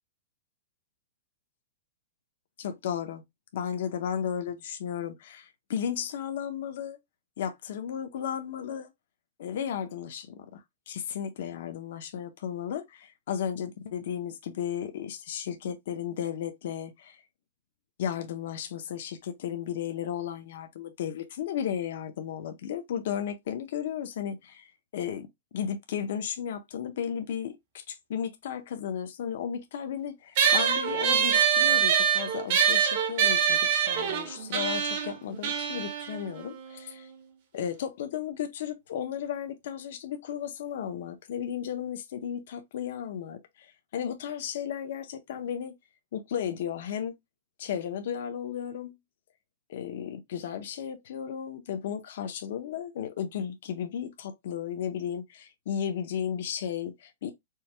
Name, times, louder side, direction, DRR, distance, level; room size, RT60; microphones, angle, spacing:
voice 1, 2.6-3.2 3.5-7.0 7.4-8.9 9.4-17.2 18.0-37.1 37.5-45.7 46.1-47.1 47.6-49.0 49.7-57.3, left 8 dB, 55° left, 0.7 m, -34 dB
sound 1, 30.4-37.2, right 8 dB, 45° right, 0.9 m, -25 dB
4.6 x 2.3 x 3.3 m
hypercardioid pair, 165°, 0 cm